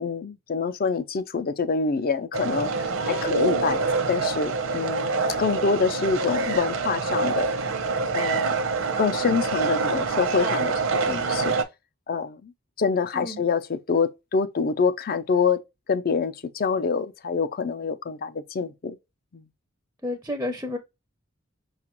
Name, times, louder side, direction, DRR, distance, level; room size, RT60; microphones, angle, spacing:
voice 1, 0.0-2.7 3.1-3.8 4.1-7.5 8.1-8.7 9.0-11.5 12.1-12.5 12.8-15.6 15.9-19.0 19.3-19.5, left 5 dB, 45° left, 0.5 m, -26 dB
sound 1, 2.3-11.6, right 4 dB, 75° right, 0.7 m, -26 dB
voice 2, 13.1-13.4 20.0-20.8, left 2 dB, 10° right, 0.5 m, -30 dB
5.8 x 2.4 x 2.9 m
head